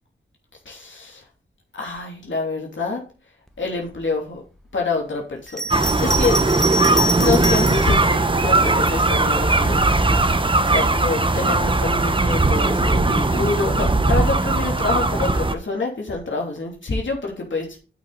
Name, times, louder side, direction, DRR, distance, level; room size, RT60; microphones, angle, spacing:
voice 1, 0.7-1.2 1.7-3.0 3.6-4.4 4.7-5.6 6.0-6.5 7.2-9.8 10.7-17.8, left 3 dB, 65° left, -1 dB, 2.9 m, -26 dB
Bell, 5.5-7.9 8.7-9.6, right 1 dB, ahead, 1.4 m, -26 dB
sound 1, 5.7-15.5, right 2 dB, 25° right, 0.9 m, -19 dB
8.2 x 6.2 x 3.9 m, 0.35 s
cardioid pair, 50°, 21 cm